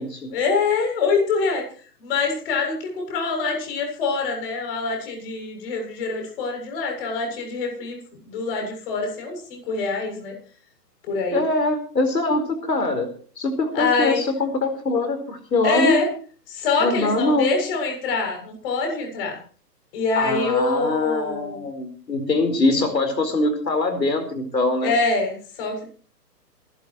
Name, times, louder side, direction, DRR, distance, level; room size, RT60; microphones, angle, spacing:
voice 1, 0.3-1.6 2.0-8.0 8.3-10.3 11.1-11.4 13.8-14.2 15.6-16.1 16.5-19.4 19.9-21.6 24.8-25.9, left 4 dB, 35° left, 2 dB, 7.3 m, -25 dB
voice 2, 11.3-13.1 13.4-16.0 16.8-17.6 20.2-24.9, left 2 dB, 80° left, 6 dB, 4.5 m, -23 dB
27.5 x 11.5 x 3.1 m, 0.42 s
hypercardioid pair, 145°, 49 cm